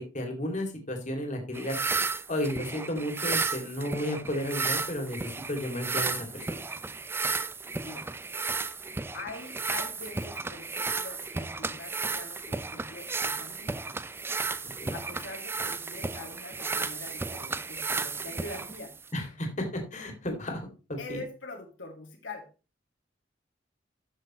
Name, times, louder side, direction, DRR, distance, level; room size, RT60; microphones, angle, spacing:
voice 1, 0.0-1.8 2.3-6.6 14.6-14.9 19.1-21.2, left 1 dB, 40° left, 3 dB, 2.5 m, -33 dB
sound 1, 1.5-19.1, right 4 dB, 10° right, 0.4 m, -33 dB
voice 2, 9.1-14.0 14.9-19.0 21.0-22.5, left 2 dB, 85° left, 2 dB, 2.5 m, -43 dB
13.5 x 6.2 x 3.1 m, 0.32 s
head